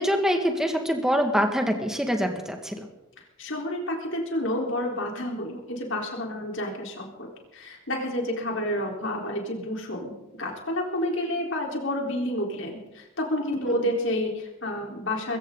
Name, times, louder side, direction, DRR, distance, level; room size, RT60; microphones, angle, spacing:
voice 1, 0.0-2.9, equal, 5° right, 3 dB, 1.9 m, -25 dB
voice 2, 3.4-15.4, left 1 dB, 65° left, 0 dB, 4.1 m, -30 dB
22.0 x 16.5 x 4.0 m, 0.94 s
head